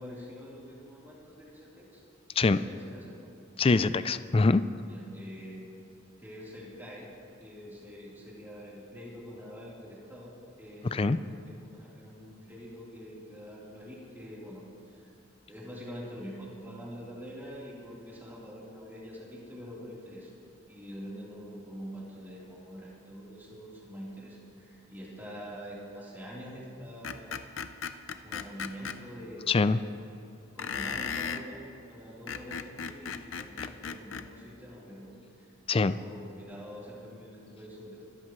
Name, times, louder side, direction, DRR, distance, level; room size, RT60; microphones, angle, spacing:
voice 1, 0.0-2.0 2.5-3.3 4.8-5.8 6.2-7.1 7.4-10.3 10.6-15.1 15.5-20.3 20.7-27.3 28.2-29.9 30.5-31.6 31.9-35.5 35.7-38.0, equal, 10° right, -7 dB, 3.7 m, -45 dB
voice 2, 3.6-4.6 11.0-11.2 29.5-29.8 35.7-35.9, left 3 dB, 30° left, 14 dB, 0.4 m, -23 dB
Screech, 27.0-29.0 30.6-31.5 32.1-34.3, left 6 dB, 75° left, 0.7 m, -36 dB
25.5 x 13.5 x 3.2 m, 2.6 s
head